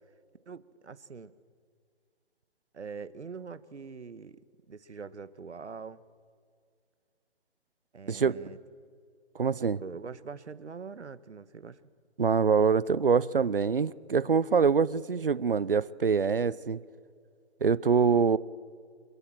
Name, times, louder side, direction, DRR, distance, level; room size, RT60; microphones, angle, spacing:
voice 1, 0.5-1.3 2.7-4.4 4.7-6.0 7.9-8.6 9.8-11.8, right 5 dB, 75° right, 1.4 m, -43 dB
voice 2, 9.3-9.8 12.2-16.8 17.6-18.4, right 5 dB, 50° right, 0.8 m, -25 dB
26.5 x 22.5 x 7.6 m
hypercardioid pair, 175°, 35 cm